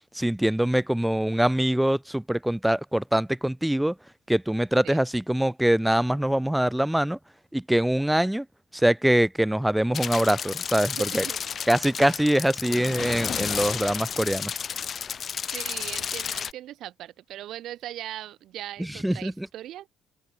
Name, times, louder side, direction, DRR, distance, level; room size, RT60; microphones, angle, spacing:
voice 1, 0.1-3.9 4.3-7.2 7.5-8.5 8.7-11.2 11.7-14.5 18.8-19.5, right 1 dB, 5° right, 0.7 m, -23 dB
sound 1, 9.9-16.5, left 7 dB, 40° left, 1.6 m, -32 dB
voice 2, 11.0-11.5 15.5-19.9, right 13 dB, 65° right, 1.7 m, -39 dB
open air
cardioid pair, 120°, 0 cm